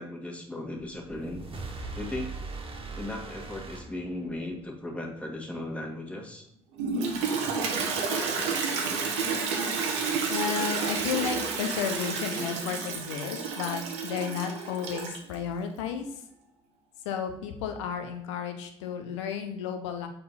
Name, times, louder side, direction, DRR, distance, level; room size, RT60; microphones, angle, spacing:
voice 1, 0.0-1.4 1.9-2.3 3.0-6.5, left 1 dB, 10° left, 0 dB, 1.8 m, -36 dB
sound 1, 0.8-4.6, right 3 dB, 35° right, 1.6 m, -40 dB
Toilet flush, 6.8-15.3, right 5 dB, 75° right, 1.0 m, -30 dB
voice 2, 10.3-16.2 17.0-20.1, left 7 dB, 75° left, 6 dB, 0.8 m, -33 dB
6.7 x 4.4 x 4.1 m, 0.78 s
figure-of-eight pair, 55°, 15 cm